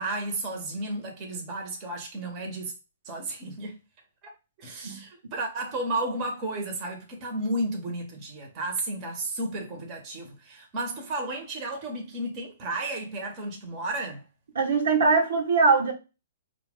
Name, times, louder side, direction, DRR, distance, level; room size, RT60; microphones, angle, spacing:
voice 1, 0.0-2.7 3.0-3.8 4.2-4.3 4.6-14.2, right 2 dB, 35° right, 1.4 m, -33 dB
voice 2, 14.5-15.9, right 4 dB, 75° right, 1.5 m, -21 dB
4.5 x 2.6 x 3.5 m
hypercardioid pair, 130°, 0 cm